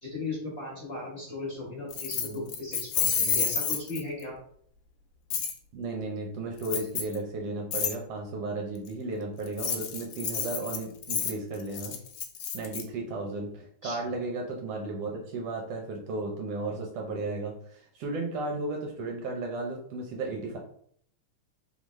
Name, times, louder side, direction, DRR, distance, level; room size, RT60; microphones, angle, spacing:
voice 1, 0.0-4.4 13.8-14.2, left 2 dB, 40° left, -5 dB, 1.0 m, -37 dB
Keys jangling, 1.9-4.2 5.3-5.5 6.6-7.2 7.7-7.9 9.4-12.8, left 7 dB, 75° left, 1.5 m, -30 dB
voice 2, 2.1-2.4 3.2-3.4 5.3-5.4 5.7-11.9 12.5-20.6, right 2 dB, 70° right, 0 dB, 1.6 m, -34 dB
3.8 x 3.8 x 3.1 m, 0.63 s
omnidirectional pair, 3.3 m